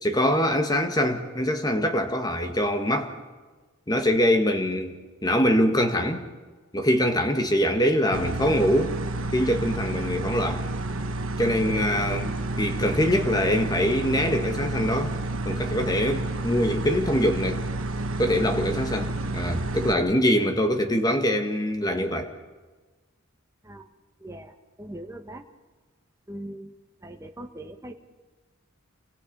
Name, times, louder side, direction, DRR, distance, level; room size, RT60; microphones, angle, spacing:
voice 1, 0.0-3.1 3.9-6.3 6.7-9.0 9.3-10.7 11.4-15.1 15.5-17.6 18.2-22.3, equal, 20° left, 6 dB, 1.8 m, -24 dB
sound 1, 8.1-19.9, right 2 dB, 70° right, 1.7 m, -30 dB
voice 2, 24.2-25.4 26.3-26.7 27.0-27.9, right 1 dB, 15° right, 4 dB, 1.4 m, -40 dB
29.5 x 25.0 x 5.5 m, 1.3 s
head